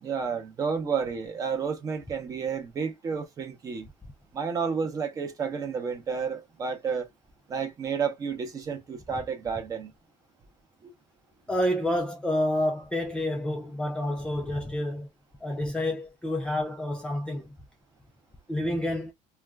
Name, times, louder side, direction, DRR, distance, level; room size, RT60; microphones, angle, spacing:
voice 1, 0.0-3.9 4.3-7.1 7.5-9.9 10.8-10.9, right 6 dB, 25° right, 0.6 m, -31 dB
voice 2, 11.5-15.1 15.4-17.5 18.5-19.1, left 1 dB, 5° left, 0.3 m, -29 dB
2.4 x 2.2 x 3.2 m
cardioid pair, 175°, 14 cm